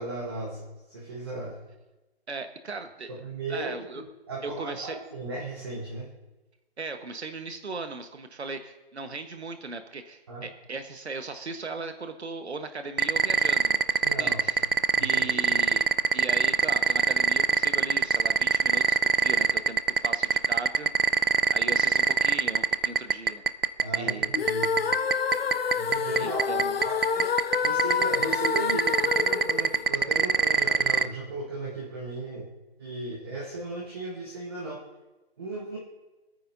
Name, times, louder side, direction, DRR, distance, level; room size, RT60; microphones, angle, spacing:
voice 1, 0.0-1.6 3.1-6.1 10.3-10.5 14.0-14.6 14.9-15.5 23.8-24.8 25.7-27.3 27.6-32.5 32.8-34.8 35.4-35.8, right 2 dB, 25° right, -3 dB, 1.4 m, -36 dB
voice 2, 2.3-3.1 3.5-4.0 4.4-5.0 6.8-14.7 15.0-15.8 16.1-21.1 21.5-23.4 23.9-24.7 26.1-26.8, right 3 dB, 85° right, 7 dB, 1.4 m, -38 dB
sound 1, 13.0-31.1, right 5 dB, 55° right, 0.6 m, -21 dB
sound 2, 24.3-30.5, left 6 dB, 65° left, 0.6 m, -28 dB
27.0 x 9.4 x 2.7 m, 1.1 s
hypercardioid pair, 170°, 32 cm